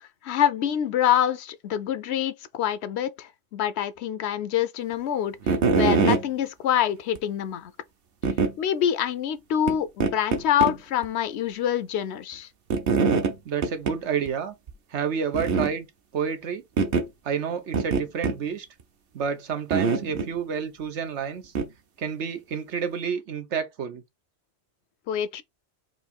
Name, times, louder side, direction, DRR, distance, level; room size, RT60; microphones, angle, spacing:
voice 1, 0.0-7.7 8.6-12.5 25.1-25.4, left 10 dB, 75° left, 0.9 m, -26 dB
sound 1, 5.4-6.2 7.2-7.3 8.2-8.5 9.7-9.8 10.0-10.7 11.0-11.1 12.7-13.3 13.6-14.0 14.3-14.4 14.7-14.8 15.3-15.7 16.8-17.1 17.7-18.4 19.7-20.3 21.6-21.7, right 5 dB, 60° right, 0.9 m, -23 dB
voice 2, 13.4-14.5 14.9-15.9 16.1-16.6 17.2-18.7 19.1-21.5 22.0-24.0, right 7 dB, 90° right, 1.2 m, -29 dB
4.7 x 2.7 x 4.1 m
omnidirectional pair, 1.2 m